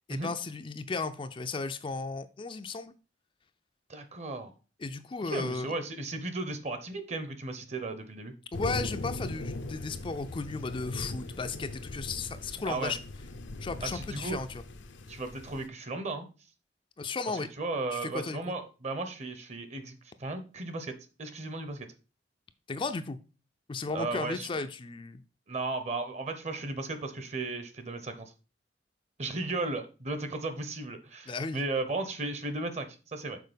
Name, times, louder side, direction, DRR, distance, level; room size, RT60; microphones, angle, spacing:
voice 1, 0.1-2.9 4.8-5.7 8.5-13.0 13.6-14.6 17.0-17.5 17.9-18.5 22.7-23.2 23.7-25.2 31.3-31.6, left 4 dB, 30° left, 8 dB, 0.4 m, -35 dB
voice 2, 3.9-4.5 5.2-8.3 12.6-12.9 13.8-14.4 15.1-16.3 17.3-21.9 23.9-24.6 25.5-28.3 29.2-33.4, right 2 dB, 40° right, 9 dB, 0.9 m, -35 dB
sound 1, 8.5-15.7, left 2 dB, 85° left, 0.7 m, -40 dB
6.6 x 4.1 x 5.1 m, 0.34 s
head